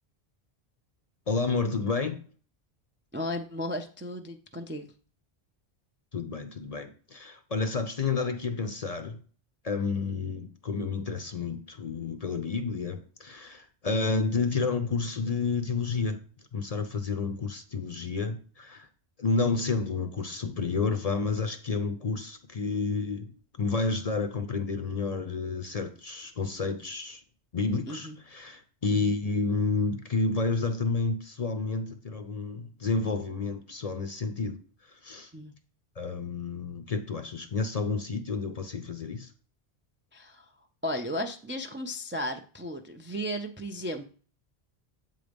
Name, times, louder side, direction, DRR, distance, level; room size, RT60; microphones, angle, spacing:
voice 1, 1.3-2.2 6.1-9.2 9.6-16.2 16.5-18.9 19.2-23.3 23.6-27.2 27.5-34.6 34.9-35.3 36.0-39.3, left 4 dB, 45° left, 0.6 m, -30 dB
voice 2, 3.1-4.9 27.9-28.2 28.9-29.1 35.3-35.5 40.1-40.5 40.8-44.0, equal, 20° right, 0.3 m, -35 dB
7.8 x 3.8 x 5.2 m
omnidirectional pair, 1.1 m